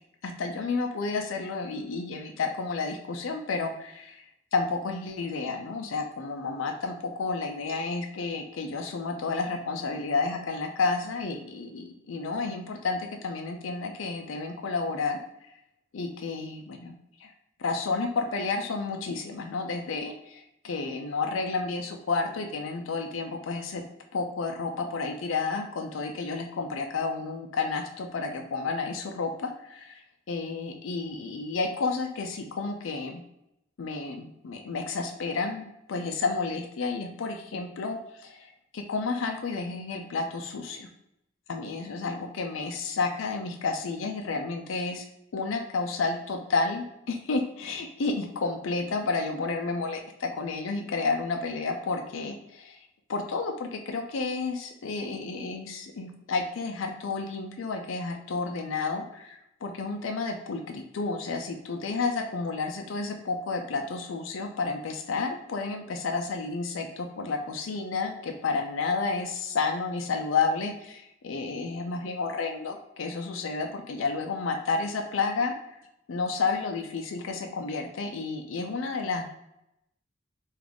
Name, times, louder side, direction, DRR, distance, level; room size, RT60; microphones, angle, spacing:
voice 1, 0.2-4.2 4.5-15.2 15.9-16.9 17.2-17.3 17.6-23.8 24.1-30.0 30.3-33.2 33.8-40.9 41.5-45.0 45.3-52.8 53.1-75.8 76.1-79.3, left 4 dB, 90° left, 3 dB, 0.5 m, -31 dB
3.6 x 2.4 x 3.4 m, 0.83 s
head